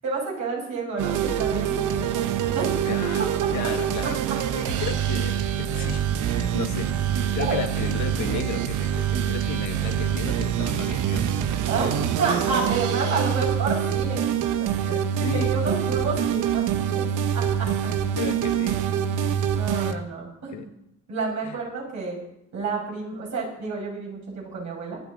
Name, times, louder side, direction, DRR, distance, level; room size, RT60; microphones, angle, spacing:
voice 1, 0.0-2.7 4.0-4.1 7.4-7.5 11.6-14.3 14.6-14.9 15.2-17.0 17.3-17.7 19.1-20.7 21.1-22.2 22.5-25.0, right 4 dB, 65° right, -2 dB, 6.9 m, -30 dB
sound 1, 1.0-19.9, right 9 dB, 85° right, 0.9 m, -25 dB
voice 2, 2.9-4.2 4.5-11.6 14.8-15.6 17.8-18.8 19.7-20.1 20.5-20.7 21.4-21.6, left 8 dB, 65° left, 7 dB, 1.5 m, -35 dB
25.5 x 8.9 x 4.1 m, 0.79 s
cardioid pair, 90°, 30 cm